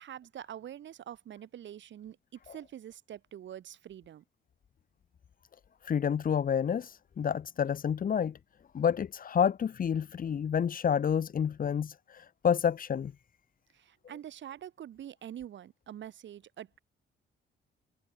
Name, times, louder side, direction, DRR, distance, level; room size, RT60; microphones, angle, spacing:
voice 1, 0.0-2.2 2.4-4.2 13.7-16.8, right 10 dB, 65° right, 4.3 m, -45 dB
voice 2, 5.8-8.4 8.7-13.1, left 8 dB, 45° left, 1.2 m, -29 dB
cardioid pair, 90°, 20 cm